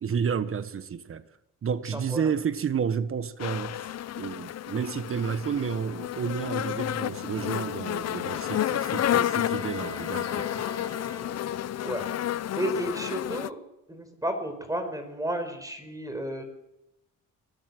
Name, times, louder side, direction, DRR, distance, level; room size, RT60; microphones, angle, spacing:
voice 1, 0.0-1.2 1.6-10.6, right 7 dB, 45° right, 14 dB, 1.3 m, -31 dB
voice 2, 1.9-2.3 11.8-13.6 13.9-16.4, right 1 dB, 10° right, 8 dB, 5.1 m, -32 dB
sound 1, 3.4-13.5, left 12 dB, 55° left, 0.7 m, -31 dB
Bowed string instrument, 8.1-11.7, left 1 dB, 15° left, 5.6 m, -42 dB
22.5 x 17.5 x 7.8 m, 0.86 s
cardioid pair, 90°, 30 cm